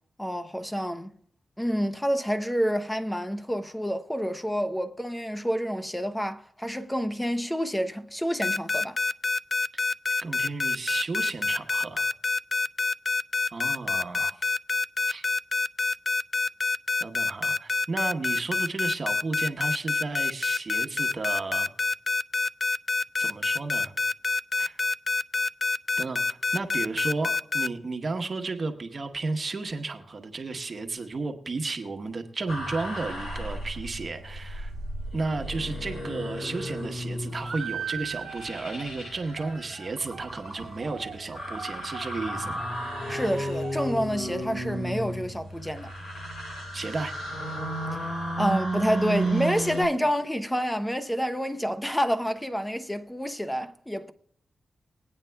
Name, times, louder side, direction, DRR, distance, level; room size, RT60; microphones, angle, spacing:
voice 1, 0.2-1.1 1.6-9.0 43.1-45.9 48.0-48.1 48.4-54.1, equal, 10° left, 0.8 m, -28 dB
sound 1, 8.4-27.7, left 4 dB, 45° left, 0.3 m, -26 dB
voice 2, 10.2-12.1 13.5-14.3 15.1-15.2 17.0-21.7 23.2-23.9 24.6-24.8 26.0-34.7 35.1-42.7 46.7-47.1, right 3 dB, 50° right, 1.1 m, -33 dB
sound 2, 32.5-49.8, right 1 dB, 90° left, 5.7 m, -34 dB
sound 3, 37.3-44.4, right 7 dB, 75° right, 1.1 m, -41 dB
21.0 x 8.9 x 2.3 m
cardioid pair, 55°, 0 cm